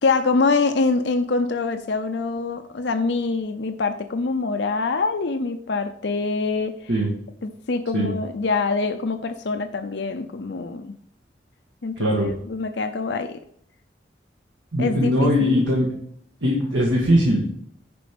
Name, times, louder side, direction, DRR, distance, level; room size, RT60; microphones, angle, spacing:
voice 1, 0.0-6.9 7.4-10.9 11.8-13.4 14.8-15.6, left 3 dB, 70° left, 7 dB, 0.6 m, -25 dB
voice 2, 12.0-12.3 14.7-15.9 16.4-17.5, equal, 80° right, -2 dB, 1.7 m, -20 dB
10.5 x 5.1 x 5.2 m, 0.66 s
head